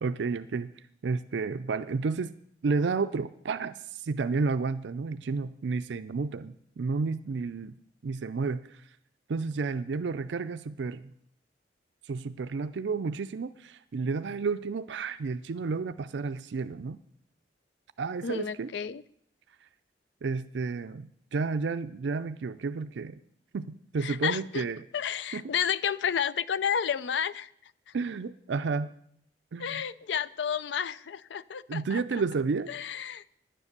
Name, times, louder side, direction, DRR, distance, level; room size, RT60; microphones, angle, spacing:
voice 1, 0.0-0.7 1.0-2.3 2.6-7.8 8.0-8.8 9.3-11.1 12.1-17.0 18.0-18.7 20.2-23.2 23.5-24.8 25.3-25.4 27.9-28.9 29.5-29.8 31.7-32.7, right 4 dB, 75° right, 0.4 m, -31 dB
voice 2, 18.2-19.0 24.0-24.6 24.9-27.5 29.6-32.0 32.7-33.2, left 8 dB, 75° left, 0.4 m, -31 dB
10.0 x 9.8 x 6.6 m
head